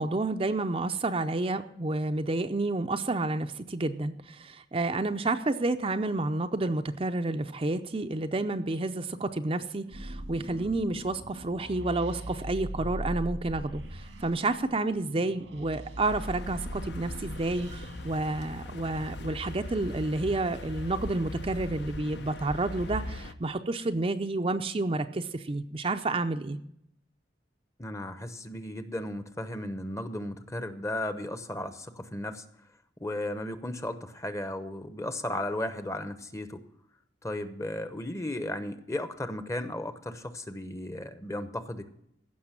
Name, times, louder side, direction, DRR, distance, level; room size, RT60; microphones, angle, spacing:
voice 1, 0.0-26.6, right 2 dB, 30° right, 7 dB, 0.6 m, -30 dB
sound 1, 9.9-18.2, right 1 dB, 90° right, 1.8 m, -40 dB
sound 2, 16.0-23.3, left 1 dB, 65° left, 0.8 m, -40 dB
voice 2, 27.8-32.4 33.0-36.6 37.2-41.9, left 1 dB, 15° left, 11 dB, 0.8 m, -35 dB
16.0 x 6.2 x 7.4 m, 0.74 s
head